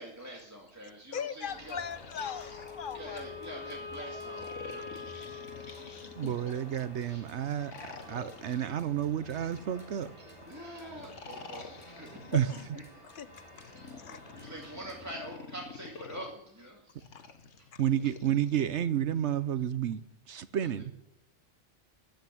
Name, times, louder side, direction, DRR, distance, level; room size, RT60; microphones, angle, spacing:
voice 1, 0.0-1.8 2.9-4.9 5.2-5.9 7.0-7.2 10.2-12.4 13.6-17.0, right 1 dB, 15° right, 2.2 m, -45 dB
voice 2, 1.1-3.3 6.0-6.3 12.3-12.7 13.0-13.5 14.0-14.2 17.2-17.3 17.7-17.8, left 7 dB, 50° left, 0.8 m, -39 dB
sound 1, 1.4-15.1, left 1 dB, 25° left, 5.8 m, -52 dB
sound 2, 1.6-3.5 4.3-6.7 7.6-10.1 10.9-12.5 13.5-16.3 17.0-18.7, left 5 dB, 85° left, 1.8 m, -49 dB
Wind instrument woodwind instrument, 2.2-6.6, left 5 dB, 10° left, 2.8 m, -44 dB
voice 3, 6.2-10.1 12.3-12.5 17.8-20.9, right 10 dB, 70° right, 1.0 m, -31 dB
14.5 x 9.4 x 9.3 m
omnidirectional pair, 1.2 m